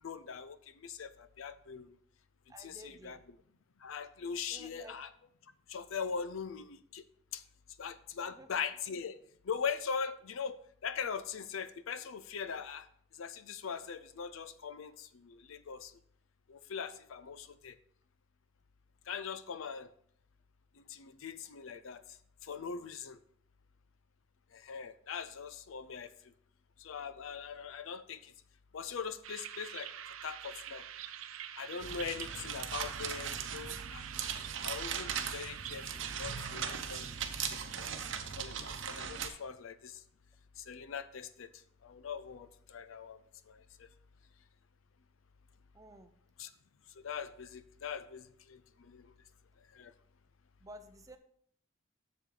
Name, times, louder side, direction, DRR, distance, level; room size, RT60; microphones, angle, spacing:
voice 1, 0.0-2.0 2.6-3.2 3.8-5.1 5.7-7.0 7.3-7.4 7.8-9.2 9.4-12.9 13.2-15.9 16.5-17.8 19.1-19.9 20.8-22.0 22.4-23.2 24.5-26.1 26.8-28.3 28.7-29.9 30.2-30.8 31.6-34.0 34.6-38.0 38.4-40.0 40.6-41.5 41.8-43.2 43.5-43.9 46.4-46.5 47.0-49.1 49.7-49.9, left 6 dB, 80° left, 14 dB, 0.5 m, -41 dB
voice 2, 2.5-3.2 4.5-5.0 8.2-8.6 45.7-46.1 50.6-51.2, right 1 dB, 15° right, 8 dB, 0.6 m, -53 dB
sound 1, 29.2-37.8, right 10 dB, 90° right, 0.5 m, -46 dB
sound 2, 31.8-39.3, right 7 dB, 65° right, 0.8 m, -39 dB
7.5 x 7.1 x 3.8 m, 0.64 s
head